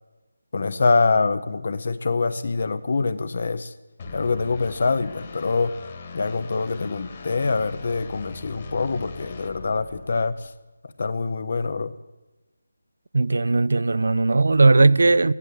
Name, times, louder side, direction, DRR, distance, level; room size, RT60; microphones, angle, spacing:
voice 1, 0.5-3.7 4.1-5.7 6.1-10.5 11.0-11.9, left 4 dB, 55° left, 0.8 m, -24 dB
sound 1, 4.0-10.5, left 4 dB, 35° left, 1.9 m, -41 dB
voice 2, 13.1-15.3, right 3 dB, 70° right, 0.4 m, -18 dB
13.5 x 11.0 x 6.8 m
figure-of-eight pair, 165°, 0 cm